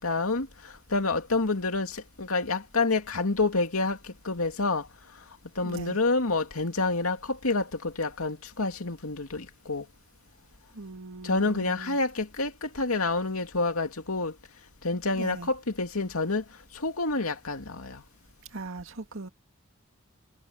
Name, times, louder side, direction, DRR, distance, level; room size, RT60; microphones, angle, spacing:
voice 1, 0.0-0.5 0.9-4.0 4.3-4.8 5.6-7.2 7.4-7.6 8.0-9.8 11.2-14.3 14.8-16.4 16.8-18.0, left 3 dB, 85° left, 2.5 m, -28 dB
voice 2, 5.6-6.0 10.7-12.0 15.1-15.5 18.5-19.3, right 3 dB, 65° right, 2.3 m, -39 dB
head